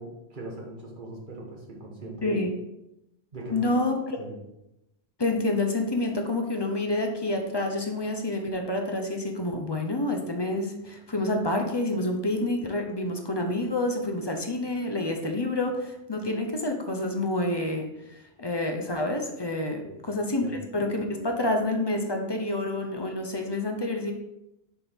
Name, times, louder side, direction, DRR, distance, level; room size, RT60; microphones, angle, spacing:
voice 1, 0.0-2.4 3.3-3.6 4.2-4.4 19.8-20.0 20.4-20.6, right 2 dB, 45° right, -1 dB, 1.4 m, -40 dB
voice 2, 3.5-4.2 5.2-24.1, left 2 dB, 25° left, 3 dB, 0.7 m, -28 dB
6.9 x 4.5 x 3.5 m, 0.88 s
omnidirectional pair, 1.2 m